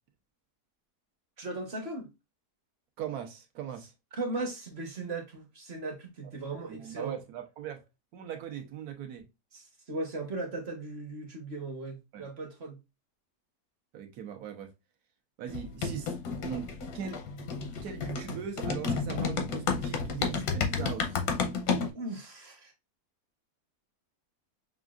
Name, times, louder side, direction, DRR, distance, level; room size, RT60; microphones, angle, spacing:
voice 1, 1.4-2.1 4.1-7.2 9.5-12.8 21.9-22.7, right 2 dB, 45° right, 1.1 m, -37 dB
voice 2, 3.0-3.9 6.7-7.8 8.1-9.2 12.1-12.3 13.9-14.7 15.4-16.1 16.4-17.2 17.8-21.2, right 9 dB, 70° right, 1.3 m, -39 dB
sound 1, 15.5-21.9, left 5 dB, 85° left, 1.4 m, -32 dB
6.1 x 2.4 x 2.3 m
omnidirectional pair, 1.7 m